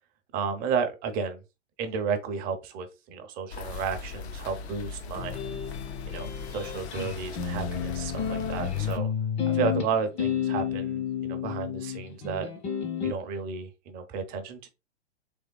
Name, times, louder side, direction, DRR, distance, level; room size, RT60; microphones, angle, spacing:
voice 1, 0.3-1.4 1.8-5.4 6.1-9.1 9.5-12.5 13.0-14.7, right 6 dB, 25° right, 0.6 m, -32 dB
sound 1, 3.5-9.0, left 5 dB, 65° left, 0.6 m, -39 dB
sound 2, 5.1-13.1, left 8 dB, 15° left, 0.5 m, -31 dB
3.5 x 3.3 x 2.2 m
hypercardioid pair, 115°, 36 cm